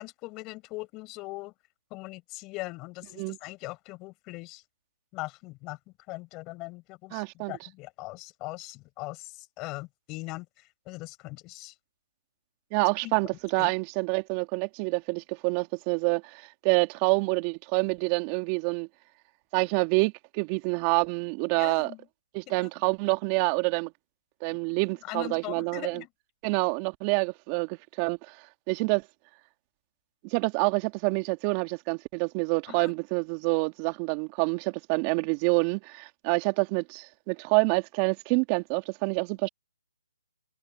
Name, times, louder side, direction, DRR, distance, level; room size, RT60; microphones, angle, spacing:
voice 1, 0.0-1.5 1.9-4.6 5.1-5.8 6.1-11.7 13.0-13.1 13.6-13.7 21.6-22.1 22.5-22.7 24.5-24.6 25.0-26.1 32.7-32.9, left 22 dB, 20° left, 5.5 m, -40 dB
voice 2, 7.1-7.6 12.7-18.9 19.5-21.9 22.3-23.9 24.4-26.0 26.4-29.0 30.2-39.5, right 30 dB, 25° right, 2.2 m, -27 dB
hypercardioid pair, 150°, 0 cm